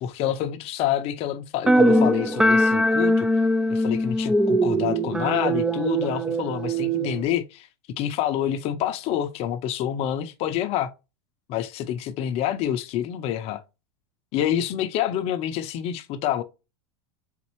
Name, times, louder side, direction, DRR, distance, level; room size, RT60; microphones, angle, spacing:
voice 1, 0.0-3.3 3.7-7.7 8.0-10.9 11.5-13.6 14.3-16.4, left 11 dB, 45° left, 0.5 m, -27 dB
sound 1, 1.7-7.2, equal, 5° right, 0.4 m, -21 dB
4.1 x 3.7 x 3.0 m
hypercardioid pair, 105°, 14 cm